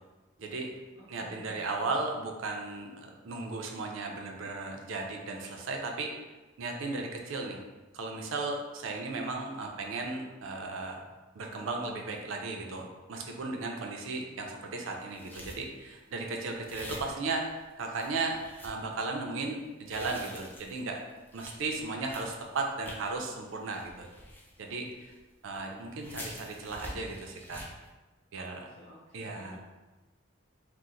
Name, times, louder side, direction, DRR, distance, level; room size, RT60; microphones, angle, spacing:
voice 1, 0.4-0.7 1.1-6.1 6.6-7.6 7.9-11.0 11.4-21.0 21.3-24.1 24.6-25.1 25.4-27.6 28.3-28.7 29.1-29.6, right 3 dB, 85° right, 2 dB, 0.5 m, -36 dB
voice 2, 1.0-1.9 28.4-29.6, left 1 dB, 50° left, -9 dB, 0.6 m, -53 dB
sound 1, 15.0-16.0 16.6-17.6 17.9-18.8 19.7-23.2 23.6-25.2 25.6-25.7 25.9-27.9, left 1 dB, 10° left, 0.4 m, -46 dB
2.8 x 2.0 x 3.7 m, 1.2 s
head